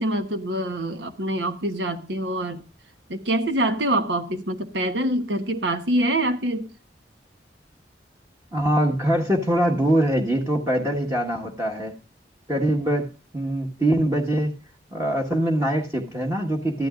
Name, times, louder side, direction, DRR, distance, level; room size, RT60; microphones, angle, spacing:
voice 1, 0.0-2.7 3.1-6.7, right 1 dB, 80° right, 1.2 m, -25 dB
voice 2, 8.5-11.9 12.5-14.5 14.9-16.9, right 1 dB, 20° right, 1.4 m, -23 dB
14.0 x 12.5 x 2.5 m
head